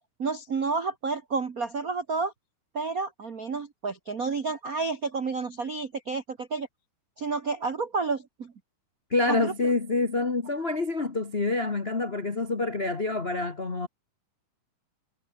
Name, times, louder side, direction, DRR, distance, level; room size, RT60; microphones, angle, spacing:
voice 1, 0.0-2.3 2.7-6.7 7.2-8.5 9.3-9.5, right 4 dB, 75° right, 0.8 m, -30 dB
voice 2, 9.1-13.9, left 3 dB, 70° left, 0.5 m, -27 dB
omnidirectional pair, 3.9 m